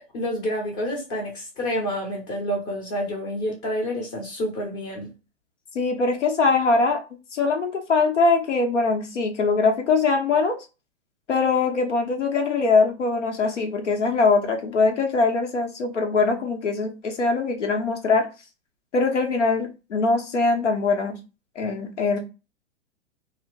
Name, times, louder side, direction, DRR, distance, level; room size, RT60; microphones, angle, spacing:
voice 1, 0.0-5.1, equal, 30° left, 0.8 m, -28 dB
voice 2, 5.7-7.0 7.3-10.6 11.3-18.3 18.9-21.2 21.6-22.2, left 4 dB, 85° left, 0.9 m, -22 dB
2.8 x 2.0 x 2.9 m
hypercardioid pair, 125°, 35 cm